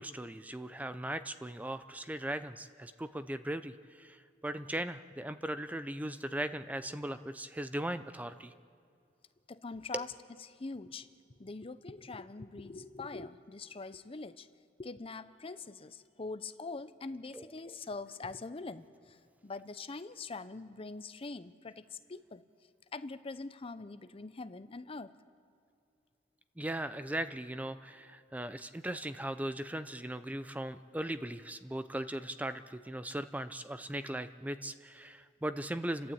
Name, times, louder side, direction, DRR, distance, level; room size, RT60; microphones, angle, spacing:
voice 1, 0.0-8.5 9.9-10.0 17.3-17.4 26.6-36.1, right 1 dB, 10° right, 11 dB, 0.5 m, -38 dB
voice 2, 9.5-10.1 10.5-11.1 11.4-14.5 14.8-19.2 19.4-21.8 22.1-22.4 22.9-25.1, left 3 dB, 30° left, 12 dB, 0.6 m, -43 dB
30.0 x 12.0 x 8.6 m, 2.4 s
head